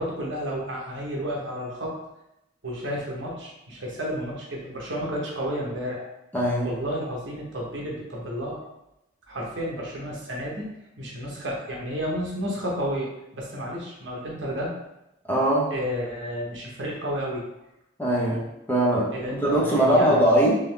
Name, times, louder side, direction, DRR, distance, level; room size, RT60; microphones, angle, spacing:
voice 1, 0.0-2.0 2.6-6.0 6.6-8.6 9.3-14.7 15.7-17.5 19.1-20.3, equal, 60° right, -3 dB, 1.0 m, -31 dB
voice 2, 6.3-6.7 15.3-15.7 18.0-18.4 18.7-20.5, right 1 dB, 10° left, -5 dB, 0.8 m, -21 dB
3.8 x 2.9 x 3.4 m, 0.87 s
head